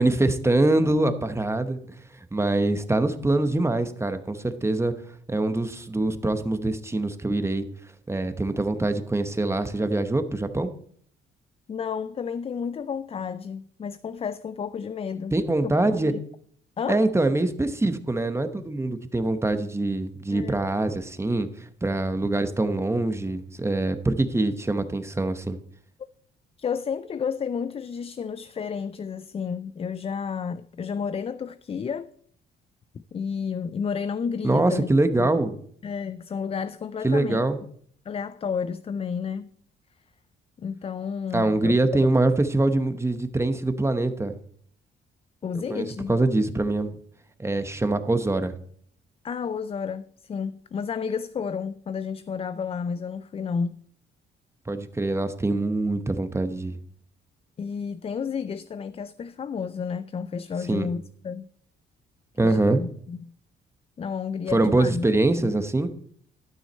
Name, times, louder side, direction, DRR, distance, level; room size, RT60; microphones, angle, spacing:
voice 1, 0.0-2.0 2.3-4.9 5.3-7.7 8.1-10.7 15.3-16.1 16.9-21.5 21.8-25.6 34.4-35.6 37.0-37.6 41.3-44.4 45.7-46.9 47.4-48.5 54.7-56.7 60.7-60.9 62.4-62.8 64.5-65.9, right 2 dB, 15° right, 0.9 m, -24 dB
voice 2, 11.7-15.3 15.6-16.2 16.8-17.1 20.3-20.6 26.6-32.1 32.9-34.9 35.2-35.3 35.8-37.4 38.1-39.5 40.6-41.8 45.4-46.1 49.2-53.8 57.6-61.5 62.4-63.3 64.0-65.1 65.3-65.6, left 6 dB, 30° left, 0.3 m, -31 dB
12.0 x 6.3 x 4.3 m
cardioid pair, 90°, 20 cm